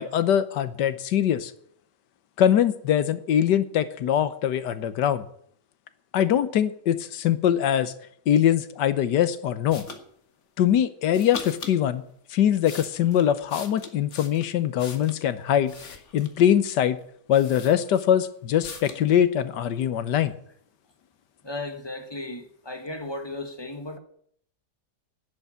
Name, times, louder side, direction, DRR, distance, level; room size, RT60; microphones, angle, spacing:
voice 1, 0.0-1.5 2.4-5.2 6.1-7.9 8.3-9.9 10.6-12.0 12.3-15.7 16.1-17.0 17.3-20.3, left 10 dB, 85° left, 1.5 m, -22 dB
sound 1, 9.7-10.0 11.1-11.8 12.4-15.2 15.7-16.5 17.0-17.1 17.3-18.2 18.6-19.0, left 4 dB, 45° left, 1.8 m, -41 dB
voice 2, 21.4-24.0, left 2 dB, 15° left, 1.5 m, -35 dB
11.0 x 8.2 x 10.0 m
omnidirectional pair, 1.8 m